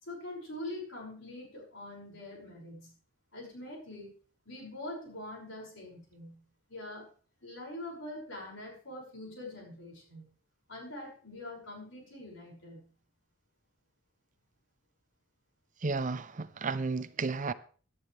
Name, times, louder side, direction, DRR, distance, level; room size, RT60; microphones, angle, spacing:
voice 1, 0.0-2.9 3.3-4.1 4.4-6.4 6.7-7.1 7.4-10.3 10.7-12.9, left 1 dB, 60° left, 6.0 m, -44 dB
voice 2, 15.8-17.5, right 4 dB, 35° right, 0.5 m, -33 dB
17.5 x 11.0 x 3.3 m
head